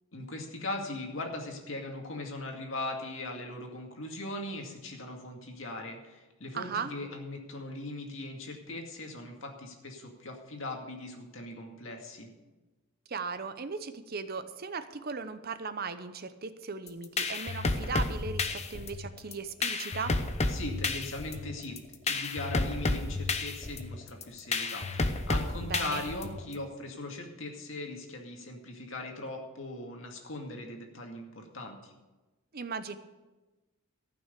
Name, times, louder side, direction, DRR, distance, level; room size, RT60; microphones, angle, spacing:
voice 1, 0.1-12.3 20.5-21.8 22.0-31.9, left 2 dB, 70° left, 2 dB, 2.2 m, -39 dB
voice 2, 6.5-6.9 13.1-20.2 25.6-26.0 32.5-33.0, right 5 dB, 50° right, 11 dB, 0.7 m, -37 dB
sound 1, 16.9-26.5, left 3 dB, 30° left, 0.8 m, -31 dB
14.0 x 6.1 x 8.3 m, 1.2 s
head